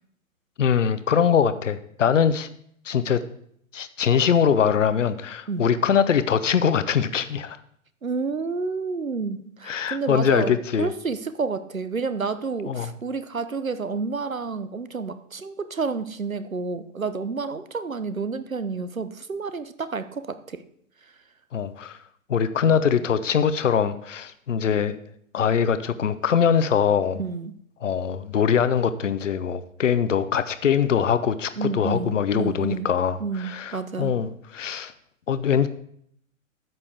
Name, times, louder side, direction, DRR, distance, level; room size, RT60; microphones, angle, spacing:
voice 1, 0.6-2.5 2.9-3.2 3.7-7.6 9.6-10.9 12.7-12.9 21.5-22.0 22.3-25.0 25.3-27.2 27.8-34.9 35.3-35.7, left 7 dB, 65° left, 13 dB, 0.8 m, -22 dB
voice 2, 8.0-20.6 27.2-27.5 31.6-32.9 33.2-34.1, right 4 dB, 90° right, 12 dB, 0.8 m, -30 dB
13.0 x 8.4 x 3.4 m, 0.67 s
figure-of-eight pair, 115°, 40 cm